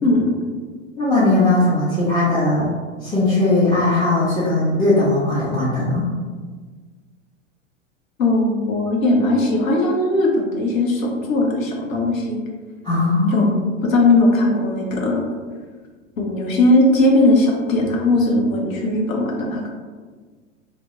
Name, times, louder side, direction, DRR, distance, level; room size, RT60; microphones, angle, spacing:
voice 1, 0.0-0.3 8.2-12.4 13.3-13.5 13.8-15.2 16.2-19.7, left 2 dB, 85° left, -1 dB, 0.7 m, -18 dB
voice 2, 1.0-6.1 12.8-13.6, left 2 dB, 15° left, -10 dB, 0.5 m, -18 dB
2.2 x 2.0 x 2.8 m, 1.5 s
hypercardioid pair, 100°, 39 cm